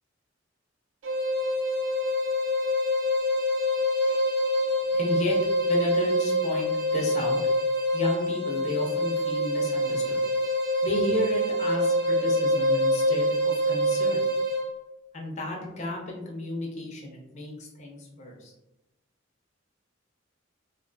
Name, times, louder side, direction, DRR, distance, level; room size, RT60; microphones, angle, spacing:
sound 1, 1.0-14.7, equal, 75° right, 0.6 m, -25 dB
voice 1, 4.9-5.4 5.7-7.4 7.9-10.2 10.8-14.3 15.1-18.5, left 1 dB, 35° left, -1 dB, 0.5 m, -33 dB
2.4 x 2.3 x 2.5 m, 0.94 s
head